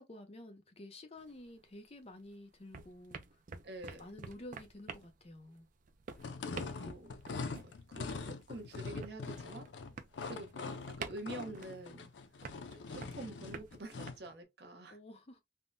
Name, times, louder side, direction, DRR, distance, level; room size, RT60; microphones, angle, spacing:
voice 1, 0.0-3.4 4.0-5.7 14.9-15.4, left 1 dB, 35° left, 0.6 m, -51 dB
sound 1, 1.2-2.3 2.5-14.1, right 5 dB, 45° right, 0.4 m, -49 dB
voice 2, 3.6-4.0 6.5-7.1 7.6-9.7 10.2-12.1 12.7-15.0, right 1 dB, 65° right, 0.8 m, -47 dB
sound 2, 6.2-14.3, left 4 dB, 90° left, 0.5 m, -43 dB
3.5 x 2.1 x 2.5 m
head